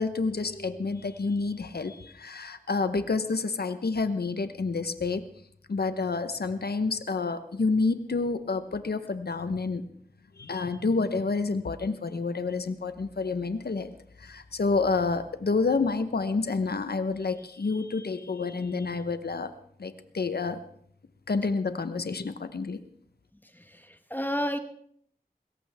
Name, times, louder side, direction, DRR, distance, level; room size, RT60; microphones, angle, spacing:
voice 1, 0.0-5.2 5.7-9.8 10.4-13.9 14.2-19.5 19.8-20.6 21.3-22.8, left 4 dB, 85° left, 11 dB, 1.0 m, -29 dB
voice 2, 23.5-24.6, equal, 10° left, 8 dB, 1.3 m, -31 dB
21.0 x 17.5 x 3.5 m, 0.63 s
wide cardioid pair, 45°, 16 cm